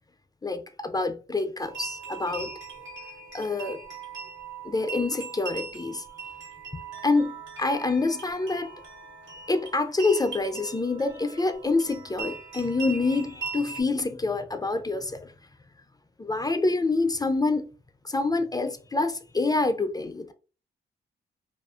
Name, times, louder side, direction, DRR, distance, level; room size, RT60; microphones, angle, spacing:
voice 1, 0.4-2.5 3.3-3.8 4.6-6.0 7.0-7.3 7.6-8.7 9.5-15.3 16.2-17.7 18.0-20.3, left 3 dB, 20° left, 0.4 m, -26 dB
sound 1, 1.6-13.8, right 5 dB, 65° right, 1.0 m, -40 dB
2.4 x 2.3 x 2.4 m
supercardioid pair, 45°, 21 cm